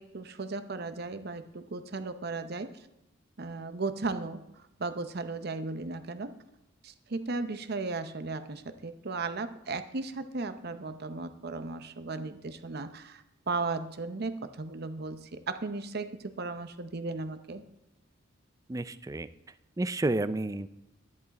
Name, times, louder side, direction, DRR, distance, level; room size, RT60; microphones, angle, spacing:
voice 1, 0.0-2.7 3.4-4.4 4.8-6.4 6.8-17.6, right 3 dB, 55° right, 11 dB, 0.7 m, -36 dB
voice 2, 18.7-19.3 19.8-20.7, right 2 dB, 15° right, 14 dB, 0.4 m, -30 dB
11.0 x 10.5 x 4.1 m, 0.88 s
head